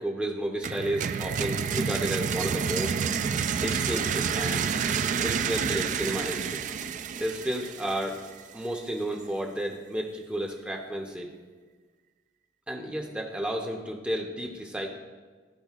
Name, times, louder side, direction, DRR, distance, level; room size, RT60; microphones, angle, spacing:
voice 1, 0.0-3.0 3.5-4.7 5.2-6.6 7.2-8.2 8.5-11.3 12.7-14.9, right 1 dB, 5° right, 0 dB, 0.6 m, -32 dB
sound 1, 0.6-8.4, right 6 dB, 45° right, 0.3 m, -29 dB
13.5 x 4.9 x 2.4 m, 1.4 s
head